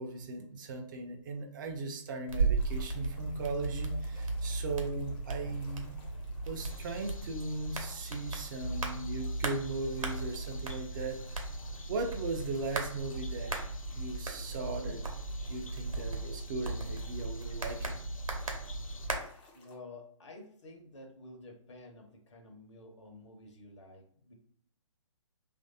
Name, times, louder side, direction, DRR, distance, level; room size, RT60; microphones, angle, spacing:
voice 1, 0.0-6.0 6.5-11.2 11.9-13.6 13.9-15.0 15.5-17.9, right 3 dB, 35° right, 3 dB, 0.5 m, -38 dB
sound 1, 2.3-19.2, right 3 dB, 80° right, 0.8 m, -36 dB
sound 2, 2.6-19.7, left 2 dB, 15° left, 0.4 m, -60 dB
sound 3, 6.6-19.1, left 4 dB, 85° left, 0.4 m, -54 dB
voice 2, 19.5-24.3, left 2 dB, 60° left, 3 dB, 0.9 m, -51 dB
3.0 x 2.5 x 2.7 m, 0.62 s
figure-of-eight pair, 135°, 17 cm